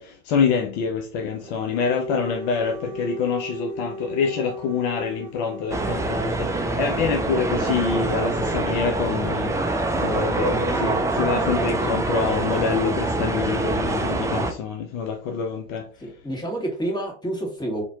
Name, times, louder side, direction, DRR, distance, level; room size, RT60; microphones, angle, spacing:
voice 1, 0.0-16.1, left 6 dB, 50° left, 0.7 m, -26 dB
Dog, 1.3-6.5, right 1 dB, 60° right, 0.9 m, -37 dB
sound 1, 5.7-14.5, right 2 dB, 10° right, 0.5 m, -25 dB
voice 2, 16.0-17.8, right 1 dB, 10° left, 1.8 m, -29 dB
4.2 x 2.9 x 2.8 m
hypercardioid pair, 85°, 35 cm